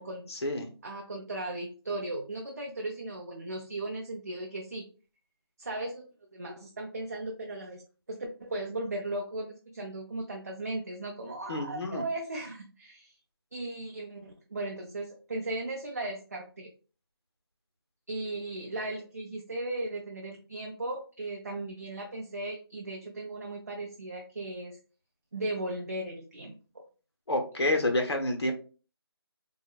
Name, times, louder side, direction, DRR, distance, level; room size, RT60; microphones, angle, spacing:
voice 1, 0.3-0.7 11.5-12.0 27.3-28.5, left 1 dB, 90° left, 4 dB, 0.8 m, -28 dB
voice 2, 0.8-4.9 5.6-6.1 6.3-7.8 8.1-13.1 13.5-16.7 18.1-24.8 25.3-26.8, right 2 dB, 40° right, 1 dB, 0.4 m, -37 dB
3.7 x 2.0 x 2.3 m, 0.36 s
figure-of-eight pair, 170°, 13 cm